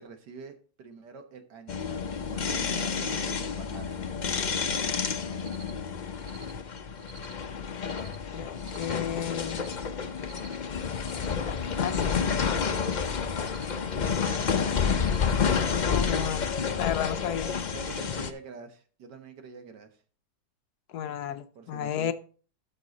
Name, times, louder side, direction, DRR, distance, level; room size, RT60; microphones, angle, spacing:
voice 1, 0.0-4.1 14.3-15.1 17.7-20.0 21.5-22.1, right 5 dB, 75° right, 6 dB, 1.8 m, -46 dB
sound 1, 1.7-18.3, left 6 dB, 85° left, 0.4 m, -29 dB
Cricket, 5.3-5.7 6.1-6.5 7.0-7.3 7.8-8.2 8.5-8.9 9.4-9.8 10.1-10.6 11.0-11.3 11.8-12.1 12.6-12.9 13.4-13.7 14.1-14.5 14.9-15.3 15.8-16.3, right 4 dB, 50° right, 1.5 m, -50 dB
voice 2, 8.3-9.6 10.9-12.2 15.8-16.5 16.8-17.5 20.9-22.1, left 9 dB, 70° left, 11 dB, 1.1 m, -33 dB
12.5 x 5.3 x 3.9 m, 0.41 s
omnidirectional pair, 1.9 m